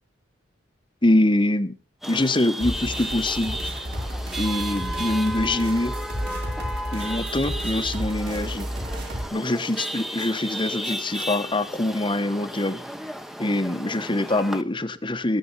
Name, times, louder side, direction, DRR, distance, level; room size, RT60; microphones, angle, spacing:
voice 1, 1.0-1.7 2.1-3.6 4.4-6.0 6.9-8.7 9.3-12.8 13.4-15.4, left 1 dB, 25° left, 1.1 m, -24 dB
Chatter / Vehicle horn car horn honking / Traffic noise roadway noise, 2.0-14.6, equal, ahead, 0.9 m, -34 dB
sound 1, 2.6-9.3, equal, 60° right, 4.4 m, -32 dB
19.5 x 8.6 x 5.6 m
head